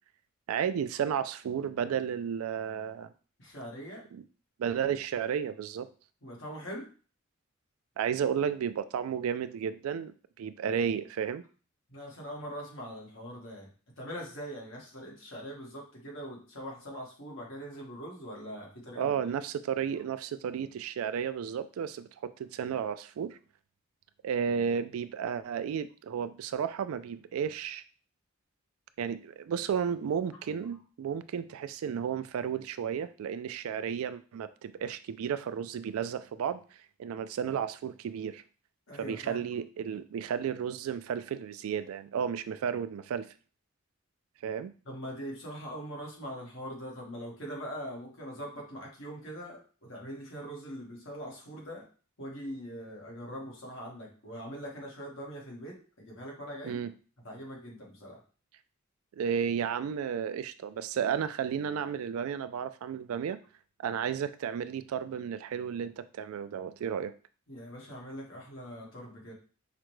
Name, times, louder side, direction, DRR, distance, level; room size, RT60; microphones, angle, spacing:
voice 1, 0.5-3.1 4.1-4.2 4.6-5.9 8.0-11.4 19.0-23.4 24.2-27.8 29.0-36.6 37.0-38.4 39.0-43.3 44.4-44.7 56.6-56.9 59.1-63.4 63.8-67.1, right 7 dB, 85° right, 13 dB, 0.3 m, -33 dB
voice 2, 3.4-4.0 6.2-6.9 11.9-13.7 14.0-19.3 38.9-39.4 44.8-51.9 52.2-56.8 57.2-58.2 67.5-69.3, equal, 65° left, -2 dB, 1.3 m, -42 dB
4.9 x 2.2 x 3.0 m, 0.37 s
head